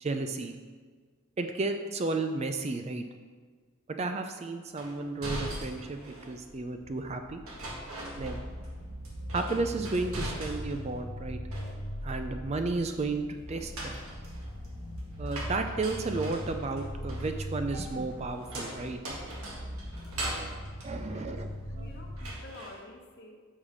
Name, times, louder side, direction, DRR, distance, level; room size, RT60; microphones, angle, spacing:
voice 1, 0.0-0.6 1.4-3.0 3.9-7.4 8.1-8.5 9.3-11.4 12.0-13.9 15.2-19.0 20.8-21.9, right 3 dB, 30° right, 6 dB, 0.4 m, -33 dB
sound 1, 4.8-6.4 7.5-8.8 9.0-10.9 11.2-12.1 13.5-21.8 22.2-22.8, right 1 dB, 75° right, 1.7 m, -41 dB
sound 2, 6.4-22.3, equal, 20° left, 0.6 m, -40 dB
voice 2, 21.0-21.4 21.7-23.4, left 2 dB, 50° left, 1 dB, 1.0 m, -49 dB
6.2 x 5.5 x 4.9 m, 1.5 s
head